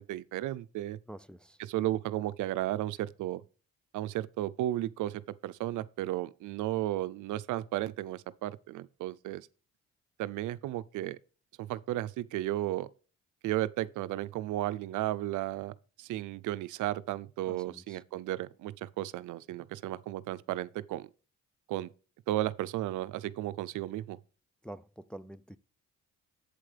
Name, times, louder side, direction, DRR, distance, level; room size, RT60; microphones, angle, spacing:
voice 1, 0.0-1.0 1.6-3.4 3.9-9.5 10.2-11.2 11.6-12.9 13.4-21.1 21.7-21.9 22.3-24.2, right 14 dB, 80° right, 0.5 m, -34 dB
voice 2, 1.1-1.6 17.5-18.0 24.6-25.6, right 1 dB, 5° left, 0.4 m, -47 dB
8.2 x 7.7 x 3.3 m
cardioid pair, 90°, 30 cm